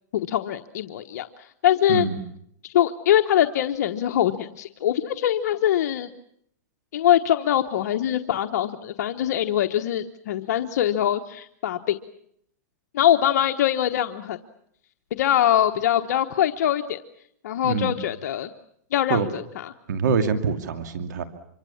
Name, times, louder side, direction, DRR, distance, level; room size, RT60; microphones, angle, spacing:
voice 1, 0.1-1.3 1.6-2.1 2.7-6.1 6.9-12.0 12.9-14.4 15.1-17.0 17.4-18.5 18.9-19.7, left 11 dB, 65° left, 6 dB, 1.1 m, -23 dB
voice 2, 19.9-21.2, right 6 dB, 75° right, 8 dB, 2.5 m, -24 dB
26.0 x 24.5 x 7.2 m, 0.70 s
hypercardioid pair, 145°, 10 cm